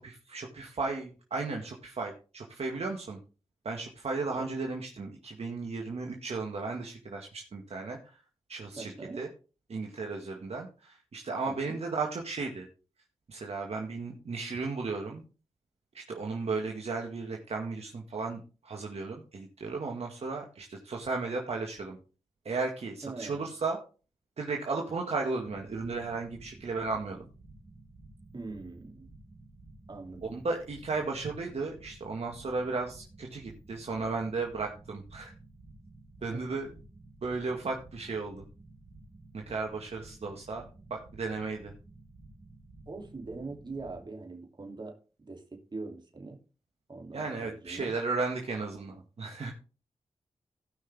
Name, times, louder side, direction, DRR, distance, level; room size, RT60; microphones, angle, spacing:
voice 1, 0.0-3.2 3.6-8.2 8.5-9.3 9.7-12.7 13.3-15.2 15.9-22.0 22.5-23.8 24.4-27.2 30.2-35.3 36.2-36.7 37.2-38.4 39.3-40.6 40.9-41.7 47.1-49.5, right 3 dB, 60° right, 0 dB, 1.9 m, -35 dB
voice 2, 8.8-9.2 11.5-11.8 23.0-23.5 28.3-29.1 29.9-30.3 36.3-36.6 42.9-45.0 45.2-46.4 46.9-47.9, right 3 dB, 40° right, 3 dB, 2.9 m, -42 dB
sound 1, 25.4-44.1, right 2 dB, 80° right, 4.0 m, -53 dB
17.0 x 5.8 x 3.5 m, 0.35 s
cardioid pair, 55°, 12 cm